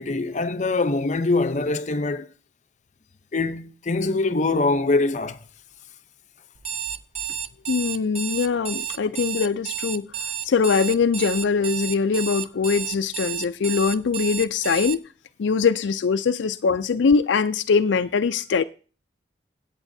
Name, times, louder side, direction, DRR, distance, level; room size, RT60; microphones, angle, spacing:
voice 1, 0.0-2.3 3.3-5.4, left 3 dB, 40° left, 0.7 m, -23 dB
Alarm, 6.6-15.0, right 8 dB, 35° right, 0.4 m, -31 dB
voice 2, 7.7-10.1 10.4-15.0 15.4-18.6, left 5 dB, 80° left, 0.4 m, -22 dB
21.0 x 8.8 x 2.7 m
head